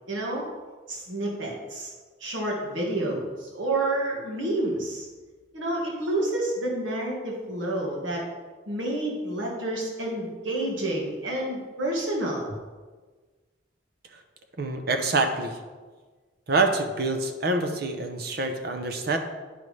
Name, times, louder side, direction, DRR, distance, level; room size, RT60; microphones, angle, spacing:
voice 1, 0.1-0.4 0.9-1.9 2.2-5.1 5.5-8.2 8.7-12.5, right 1 dB, 75° right, -2 dB, 1.6 m, -29 dB
voice 2, 14.6-15.6 16.5-19.2, right 3 dB, 50° right, 5 dB, 0.7 m, -26 dB
10.0 x 5.4 x 3.2 m, 1.4 s
head